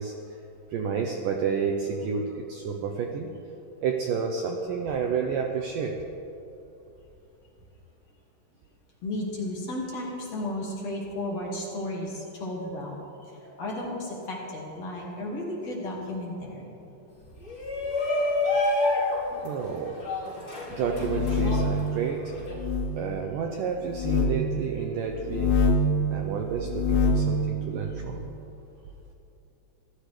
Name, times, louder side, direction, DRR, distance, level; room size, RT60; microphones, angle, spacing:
voice 1, 0.0-3.3 3.8-6.0 13.4-13.5 19.3-20.0 20.7-22.3 22.9-25.7 26.1-28.3, right 6 dB, 85° right, 3 dB, 1.9 m, -30 dB
voice 2, 9.0-16.8, left 1 dB, 45° left, -3 dB, 2.7 m, -34 dB
Shout, 17.4-22.5, left 2 dB, 30° left, 4.1 m, -28 dB
sound 1, 20.8-21.8 22.5-22.9 23.9-24.3 25.2-25.9 26.6-27.3, left 3 dB, 85° left, 3.7 m, -24 dB
25.5 x 15.0 x 3.3 m, 2.9 s
omnidirectional pair, 4.9 m